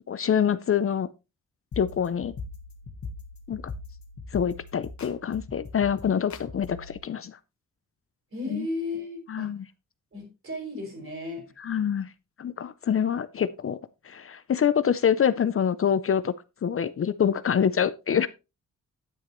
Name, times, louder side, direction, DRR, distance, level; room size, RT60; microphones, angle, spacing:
voice 1, 0.1-1.1 1.8-2.3 3.5-3.6 4.3-7.4 8.5-8.7 9.3-9.6 11.6-12.1 12.4-13.8 14.0-16.3 16.6-18.3, left 8 dB, 45° left, 0.5 m, -25 dB
sound 1, 1.7-7.0, left 3 dB, 65° left, 1.6 m, -41 dB
voice 2, 8.3-9.5 10.1-11.5, left 2 dB, 45° right, 5.2 m, -34 dB
9.8 x 9.2 x 3.0 m
wide cardioid pair, 165°, 30 cm